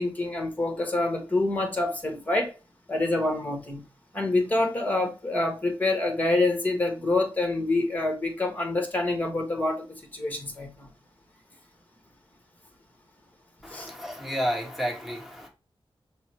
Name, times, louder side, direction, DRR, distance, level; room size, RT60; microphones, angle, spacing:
voice 1, 0.0-2.5 2.9-3.8 4.1-10.9 13.7-13.9, left 2 dB, 15° left, 1.2 m, -26 dB
voice 2, 13.6-15.5, equal, ahead, 1.5 m, -31 dB
6.0 x 2.1 x 2.9 m
wide cardioid pair, 110°, 10 cm